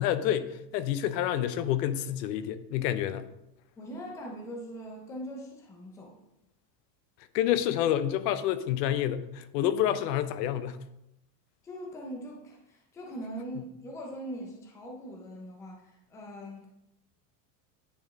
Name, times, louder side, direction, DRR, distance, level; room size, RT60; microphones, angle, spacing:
voice 1, 0.0-3.3 7.3-10.8, left 11 dB, 80° left, 0.7 m, -28 dB
voice 2, 3.8-6.2 11.6-16.7, equal, 5° left, 0.4 m, -41 dB
9.8 x 4.3 x 3.1 m
supercardioid pair, 165°, 49 cm